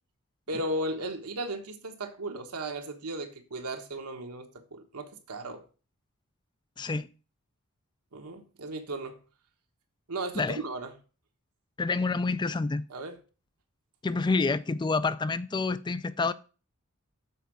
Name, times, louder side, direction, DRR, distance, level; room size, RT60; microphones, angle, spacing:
voice 1, 0.5-5.6 8.1-9.2 10.1-10.9 12.9-13.2, right 1 dB, 80° right, 1.3 m, -36 dB
voice 2, 6.8-7.1 10.4-10.6 11.8-12.8 14.0-16.3, left 3 dB, 20° left, 0.3 m, -28 dB
7.0 x 4.6 x 6.1 m
head